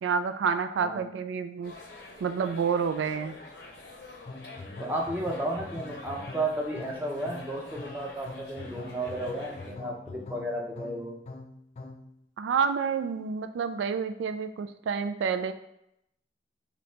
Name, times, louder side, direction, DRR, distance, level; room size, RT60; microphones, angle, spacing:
voice 1, 0.0-1.7 2.2-3.4 12.4-15.5, right 6 dB, 85° right, 8 dB, 0.3 m, -29 dB
sound 1, 1.6-9.7, left 2 dB, 60° left, 0.7 m, -47 dB
sound 2, 4.3-12.1, left 3 dB, 35° left, 0.3 m, -43 dB
voice 2, 4.8-11.2, right 1 dB, 10° right, -1 dB, 0.6 m, -33 dB
4.0 x 2.8 x 3.2 m, 0.79 s
head